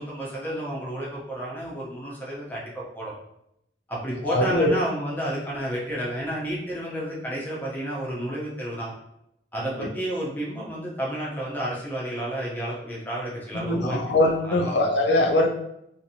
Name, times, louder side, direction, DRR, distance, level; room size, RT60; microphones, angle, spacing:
voice 1, 0.0-3.1 3.9-8.9 9.5-14.0 14.4-14.9, right 1 dB, 10° left, -5 dB, 0.7 m, -31 dB
voice 2, 4.3-4.8 9.8-9.9 13.5-15.5, left 1 dB, 75° left, 3 dB, 0.5 m, -22 dB
2.6 x 2.5 x 2.7 m, 0.79 s
head